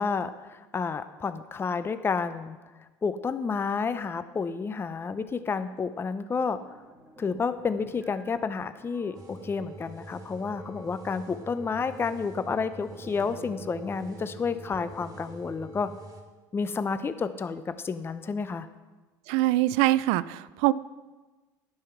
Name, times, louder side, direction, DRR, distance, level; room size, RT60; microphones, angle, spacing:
voice 1, 0.0-2.6 3.0-6.6 7.2-15.9 16.5-18.7, left 5 dB, 20° left, 12 dB, 0.5 m, -30 dB
sound 1, 6.4-15.9, right 1 dB, 10° right, 1.7 m, -51 dB
sound 2, 9.1-16.2, right 1 dB, 35° right, 1.9 m, -45 dB
voice 2, 19.3-20.7, right 16 dB, 70° right, 18 dB, 0.4 m, -23 dB
11.0 x 5.6 x 5.9 m, 1.2 s
supercardioid pair, 95°, 11 cm